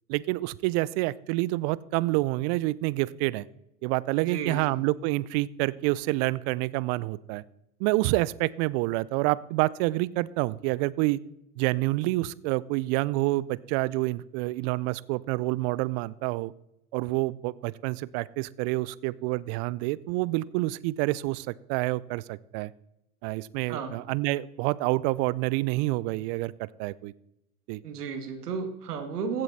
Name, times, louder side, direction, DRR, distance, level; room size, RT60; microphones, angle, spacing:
voice 1, 0.1-3.5 3.8-7.4 7.8-11.2 11.6-16.5 16.9-22.7 23.2-27.1 27.7-27.8, right 20 dB, 45° right, 21 dB, 0.5 m, -28 dB
voice 2, 4.2-4.6 23.7-23.9 27.8-29.4, right 6 dB, 80° right, 7 dB, 2.0 m, -33 dB
15.5 x 7.7 x 4.1 m, 0.87 s
hypercardioid pair, 95°, 46 cm